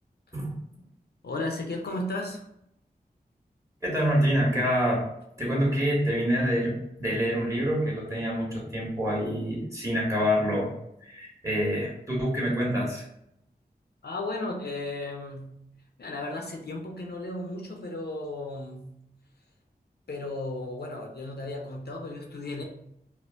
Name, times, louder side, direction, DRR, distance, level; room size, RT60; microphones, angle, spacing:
voice 1, 1.2-2.4 14.0-15.6 16.0-19.0 20.1-22.6, left 2 dB, 80° left, 1 dB, 0.6 m, -34 dB
voice 2, 3.8-5.0 5.4-10.7 11.0-13.1, equal, 20° right, -3 dB, 1.4 m, -26 dB
4.3 x 2.1 x 2.5 m, 0.76 s
wide cardioid pair, 55°, 17 cm